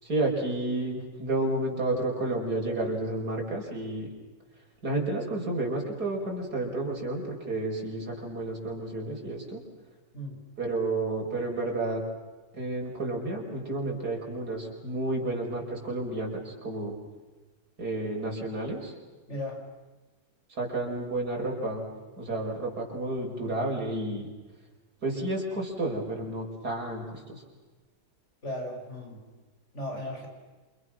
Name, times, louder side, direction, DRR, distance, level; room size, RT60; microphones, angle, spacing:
voice 1, 0.0-4.1 4.8-9.6 10.6-12.0 12.5-16.9 17.8-18.9 20.6-21.8 22.2-24.3 25.0-27.4, right 2 dB, 85° right, -1 dB, 6.1 m, -31 dB
voice 2, 10.1-10.5 19.3-19.7 28.4-29.2 29.7-30.3, left 1 dB, 45° left, 1 dB, 6.2 m, -36 dB
29.0 x 28.5 x 6.3 m, 1.2 s
omnidirectional pair, 1.6 m